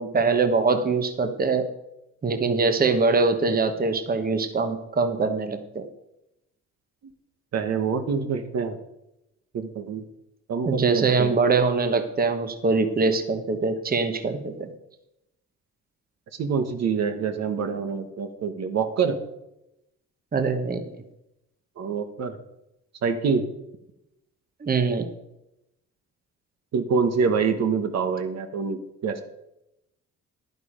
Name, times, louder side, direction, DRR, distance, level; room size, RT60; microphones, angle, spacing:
voice 1, 0.0-1.7 2.2-5.8 10.6-14.7 20.3-20.9 24.6-25.1, right 4 dB, 30° right, 7 dB, 1.2 m, -23 dB
voice 2, 7.5-8.8 9.5-10.0 10.5-11.3 16.4-19.2 21.8-22.4 23.0-23.5 26.7-29.2, right 5 dB, 60° right, 7 dB, 1.2 m, -26 dB
11.0 x 9.5 x 5.1 m, 0.87 s
cardioid pair, 90°, 30 cm